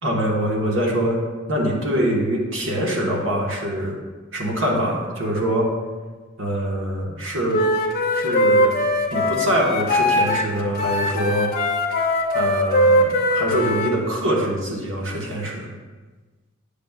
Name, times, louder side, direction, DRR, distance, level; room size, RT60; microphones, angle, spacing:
voice 1, 0.0-1.2 1.5-4.0 4.3-5.7 6.4-7.6 8.1-8.8 9.1-11.5 12.3-15.7, equal, 80° right, -2 dB, 1.4 m, -24 dB
Wind instrument woodwind instrument, 7.5-10.5 10.7-13.9, left 1 dB, 45° left, 0.7 m, -20 dB
8.4 x 6.9 x 2.4 m, 1.3 s
head